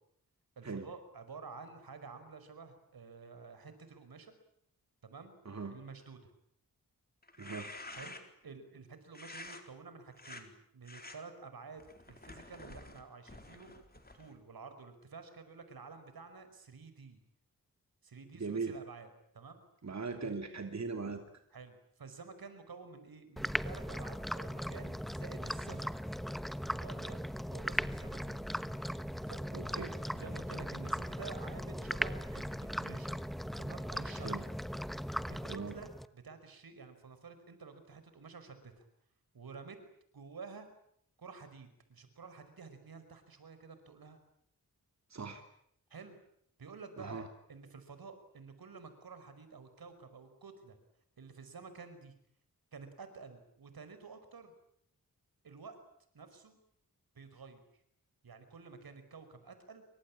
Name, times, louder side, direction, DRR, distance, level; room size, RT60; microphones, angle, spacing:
voice 1, 0.6-4.3 5.0-5.4 5.7-6.3 7.9-8.2 8.4-13.8 14.1-17.2 18.0-19.1 19.3-19.6 21.5-26.0 26.7-27.2 27.5-28.4 29.2-33.2 33.6-34.5 35.3-38.9 39.3-39.8 40.1-40.7 41.2-44.2 45.9-46.2 46.6-50.8 51.2-52.1 52.7-54.5 55.4-55.8 56.1-56.6 57.2-57.6 58.2-59.8, right 4 dB, 80° right, 10 dB, 5.3 m, -51 dB
sound 1, 7.2-8.4 9.1-9.6 10.1-10.4 10.8-11.2 11.8-14.4, left 2 dB, 25° left, 4.3 m, -49 dB
voice 2, 7.4-7.7 18.4-18.7 19.8-21.2 29.5-29.9 34.2-34.4 35.5-35.8 45.1-45.4 47.0-47.2, right 4 dB, 50° right, 5 dB, 3.0 m, -39 dB
sound 2, 23.4-36.1, equal, ahead, 1.1 m, -38 dB
27.5 x 25.0 x 8.7 m, 0.71 s
wide cardioid pair, 105°, 36 cm